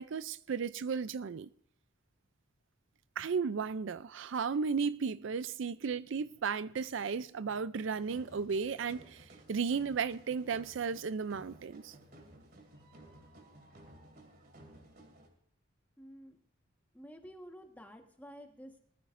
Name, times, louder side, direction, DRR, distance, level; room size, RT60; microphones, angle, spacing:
voice 1, 0.0-1.5 3.2-11.9, right 5 dB, 65° right, 0.4 m, -34 dB
sound 1, 7.8-15.3, right 1 dB, 50° right, 2.8 m, -56 dB
voice 2, 16.0-16.4 16.9-18.8, equal, 10° left, 1.4 m, -51 dB
20.0 x 14.0 x 2.6 m
head